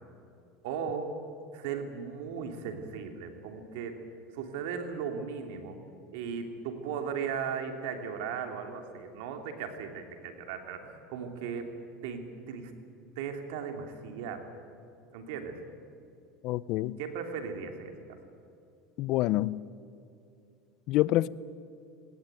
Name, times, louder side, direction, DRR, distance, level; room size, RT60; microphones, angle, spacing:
voice 1, 0.6-1.1 1.5-4.0 4.3-5.8 6.1-11.7 12.0-12.7 13.1-14.5 15.1-15.6 17.0-17.9, right 6 dB, 80° right, 5 dB, 3.0 m, -37 dB
voice 2, 16.4-17.0 19.0-19.6 20.9-21.3, left 16 dB, 55° left, 20 dB, 0.6 m, -27 dB
19.5 x 19.5 x 9.3 m, 2.6 s
supercardioid pair, 135°, 0 cm